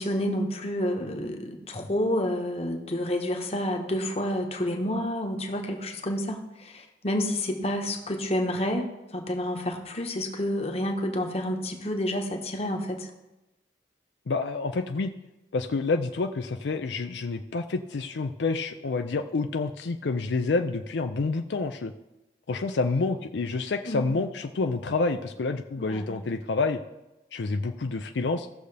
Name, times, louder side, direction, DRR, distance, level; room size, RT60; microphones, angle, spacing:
voice 1, 0.0-8.9 9.1-13.1 23.8-24.2 25.8-26.3, left 1 dB, 35° left, 3 dB, 1.2 m, -29 dB
voice 2, 14.3-15.1 15.5-21.9 22.5-26.8 27.3-28.5, left 3 dB, 80° left, 7 dB, 0.5 m, -28 dB
17.0 x 6.6 x 3.4 m, 0.98 s
head